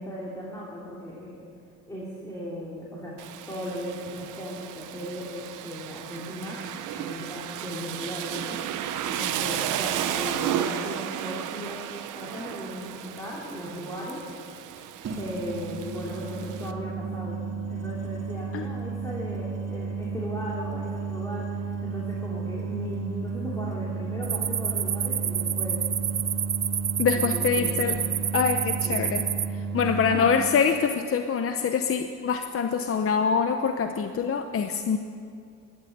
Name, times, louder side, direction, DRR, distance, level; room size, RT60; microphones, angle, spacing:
voice 1, 0.0-1.4 1.9-3.1 3.5-6.6 6.9-8.6 9.0-11.8 12.1-14.2 15.2-25.8 27.0-27.9 28.8-29.1 29.8-30.3, equal, 10° left, -7 dB, 3.1 m, -37 dB
Rain, 3.2-16.7, right 10 dB, 85° right, 0.8 m, -34 dB
sound 1, 12.2-12.4 15.0-30.2, right 4 dB, 55° right, 2.3 m, -33 dB
sound 2, 24.2-29.5, right 8 dB, 35° right, 0.4 m, -29 dB
voice 2, 27.0-28.0 28.3-35.0, left 6 dB, 45° left, 7 dB, 0.8 m, -25 dB
12.5 x 12.0 x 8.0 m, 2.3 s
cardioid pair, 90°, 30 cm